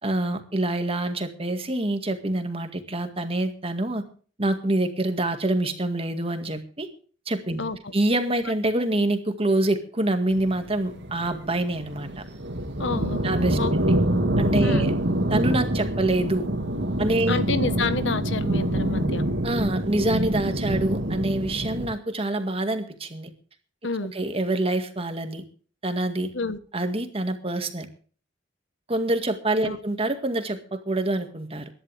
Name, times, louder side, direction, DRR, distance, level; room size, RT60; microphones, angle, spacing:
voice 1, 0.0-4.0 4.4-6.9 7.3-7.6 7.9-12.2 13.2-14.0 14.4-14.9 15.3-16.5 17.0-17.4 19.4-23.3 24.1-25.4 25.8-26.3 26.7-27.9 28.9-31.7, right 1 dB, 30° right, 2.0 m, -26 dB
voice 2, 7.6-7.9 12.8-13.7 14.6-14.9 17.3-19.2 23.8-24.1 26.3-26.6 29.6-29.8, left 3 dB, 70° left, 1.3 m, -29 dB
sound 1, 10.3-21.9, right 1 dB, 65° right, 2.1 m, -26 dB
22.5 x 11.0 x 3.4 m
head